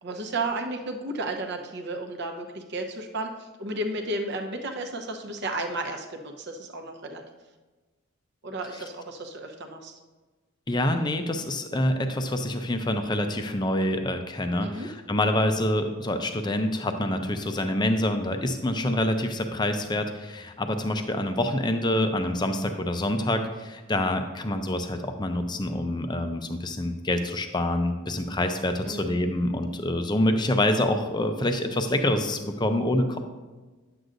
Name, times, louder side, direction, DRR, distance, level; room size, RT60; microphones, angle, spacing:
voice 1, 0.0-7.2 8.4-9.9 14.6-14.9 28.8-29.2, right 2 dB, 50° right, 3 dB, 0.9 m, -33 dB
voice 2, 10.7-33.2, left 1 dB, 20° left, 6 dB, 0.5 m, -26 dB
10.0 x 7.9 x 2.6 m, 1.3 s
head